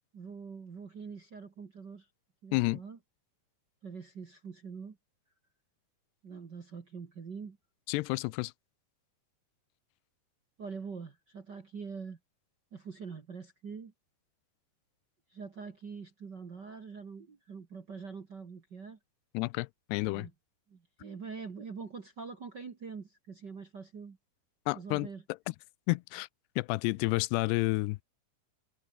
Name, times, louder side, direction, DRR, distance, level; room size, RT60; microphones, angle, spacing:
voice 1, 0.1-2.1 2.4-3.0 3.8-5.0 6.2-7.6 10.6-12.2 12.7-13.9 15.3-19.0 20.1-20.3 20.7-24.2 24.7-25.2, right 5 dB, 45° right, 1.5 m, -44 dB
voice 2, 2.5-2.8 7.9-8.5 19.3-20.3 24.7-25.1 25.5-25.6 25.9-26.3 26.6-28.0, left 23 dB, 90° left, 2.7 m, -30 dB
omnidirectional pair, 4.7 m